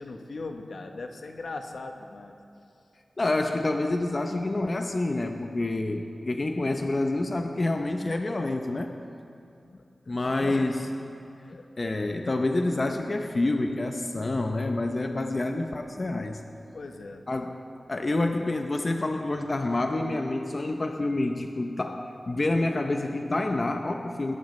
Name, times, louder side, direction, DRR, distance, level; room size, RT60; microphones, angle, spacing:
voice 1, 0.0-2.3 9.6-9.8 10.2-10.7 11.5-11.7 16.7-17.4, left 3 dB, 70° left, 4 dB, 1.0 m, -39 dB
voice 2, 3.2-8.9 10.1-10.8 11.8-16.4 17.3-17.6 17.9-24.4, left 2 dB, 40° left, 4 dB, 0.7 m, -28 dB
21.0 x 12.0 x 3.2 m, 2.6 s
wide cardioid pair, 75°, 0 cm